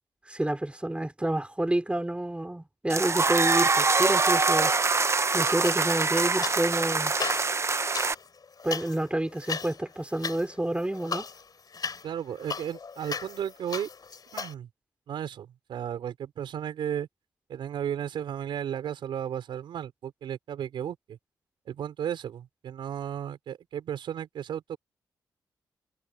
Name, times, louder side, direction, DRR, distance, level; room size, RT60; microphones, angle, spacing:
voice 1, 0.3-4.7 5.3-7.1 8.6-11.3, right 1 dB, 15° right, 3.7 m, -29 dB
sound 1, 2.9-8.1, right 3 dB, 35° right, 0.9 m, -24 dB
sound 2, 5.6-6.8 7.1-14.5, left 5 dB, 55° left, 3.4 m, -37 dB
voice 2, 12.0-13.9 14.3-14.7 15.1-17.1 17.5-21.2 21.7-24.8, right 9 dB, 85° right, 5.1 m, -34 dB
cardioid pair, 55°, 8 cm